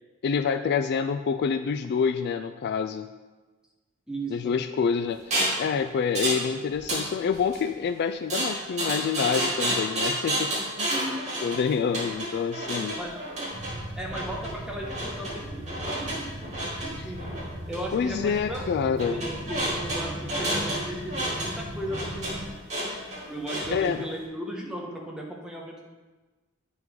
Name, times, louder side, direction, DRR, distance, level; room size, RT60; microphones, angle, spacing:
voice 1, 0.2-3.1 4.3-10.9 11.4-13.0 17.9-19.2 23.7-24.0, left 6 dB, 50° left, 9 dB, 0.3 m, -27 dB
voice 2, 4.1-4.5 10.9-11.4 13.0-13.2 14.0-16.5 16.7-17.3 17.7-18.6 19.1-22.5 23.3-25.8, right 1 dB, 5° right, -2 dB, 1.2 m, -36 dB
sound 1, 5.3-5.6 6.1-6.5 6.7-7.6 8.3-23.9, right 1 dB, 30° right, 2.8 m, -30 dB
sound 2, 13.5-22.5, right 1 dB, 70° right, 2.0 m, -39 dB
9.2 x 5.9 x 3.8 m, 1.2 s
head